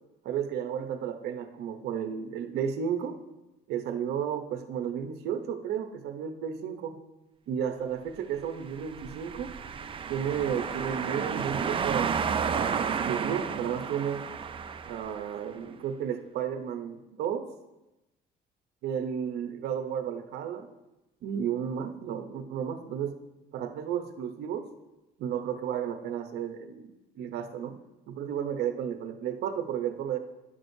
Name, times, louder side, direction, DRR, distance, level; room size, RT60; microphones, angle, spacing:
voice 1, 0.2-3.2 3.7-7.0 7.5-9.5 10.1-12.1 12.5-14.2 14.9-17.4 18.8-20.7 21.2-23.1 23.5-24.7 25.2-27.7 28.1-30.2, right 8 dB, 75° right, 7 dB, 0.8 m, -33 dB
sound 1, 8.7-15.5, right 6 dB, 30° right, 0.4 m, -32 dB
Sliding door, 10.1-13.1, left 3 dB, 90° left, 1.1 m, -47 dB
11.0 x 6.3 x 2.7 m, 1.0 s
cardioid pair, 110°, 17 cm